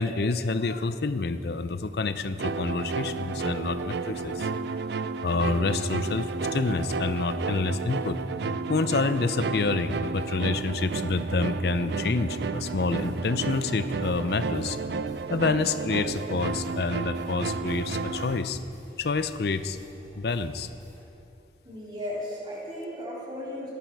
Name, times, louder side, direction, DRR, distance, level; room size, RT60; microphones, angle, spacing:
voice 1, 0.0-4.5 5.2-8.2 8.7-14.8 15.3-18.7 19.0-19.8 20.2-20.7, left 3 dB, 60° left, 12 dB, 0.5 m, -28 dB
sound 1, 2.4-18.4, right 4 dB, 65° right, 0.4 m, -32 dB
sound 2, 12.7-21.1, equal, 20° left, 3.6 m, -55 dB
voice 2, 21.6-23.7, left 1 dB, 25° right, -6 dB, 3.6 m, -35 dB
17.5 x 10.5 x 4.7 m, 2.9 s
head